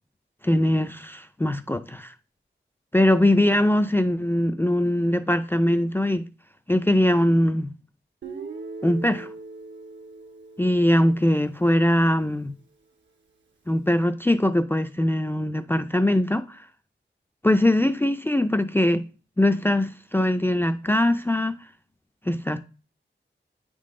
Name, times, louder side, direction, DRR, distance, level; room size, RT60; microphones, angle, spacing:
voice 1, 0.4-2.1 2.9-6.3 6.7-7.7 8.8-9.3 10.6-12.5 13.7-16.7 17.4-19.1 19.4-21.6 22.3-22.6, left 1 dB, 10° left, 0.4 m, -21 dB
Guitar, 8.2-12.2, right 3 dB, 70° right, 1.2 m, -41 dB
9.0 x 3.8 x 3.7 m
wide cardioid pair, 75°, 20 cm